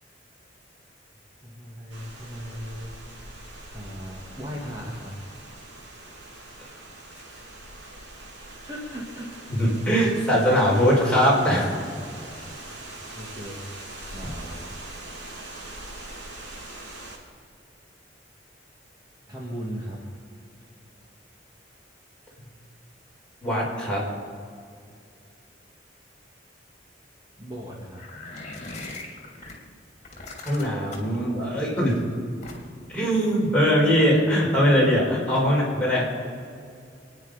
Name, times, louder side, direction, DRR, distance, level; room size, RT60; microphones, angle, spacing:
voice 1, 1.4-2.9 3.7-5.1 8.7-9.4 13.1-14.7 19.3-20.0 27.4-28.0 35.4-35.5, equal, 25° right, -4 dB, 2.2 m, -37 dB
sound 1, 1.9-17.2, right 2 dB, 75° right, 2.9 m, -42 dB
voice 2, 9.5-11.7 23.4-24.1 30.4-32.0 32.9-36.0, equal, 5° left, -5 dB, 5.0 m, -21 dB
sound 2, 28.0-29.5 30.0-31.2 32.4-32.9, left 2 dB, 40° left, 2.9 m, -39 dB
26.5 x 9.9 x 5.2 m, 2.3 s
head